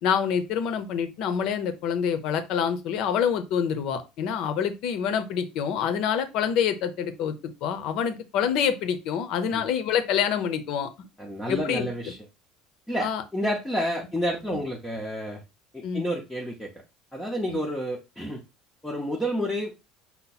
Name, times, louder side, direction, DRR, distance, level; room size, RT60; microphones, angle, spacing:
voice 1, 0.0-7.4 7.6-11.1 11.5-11.9 13.0-13.2 14.5-14.6 15.8-16.1 17.5-17.6, left 8 dB, 50° left, 10 dB, 0.7 m, -26 dB
voice 2, 11.2-12.2 12.9-15.4 15.7-16.7 17.1-18.4 18.8-19.7, equal, 5° left, -2 dB, 0.6 m, -30 dB
5.6 x 2.1 x 4.1 m, 0.26 s
cardioid pair, 170°, 0 cm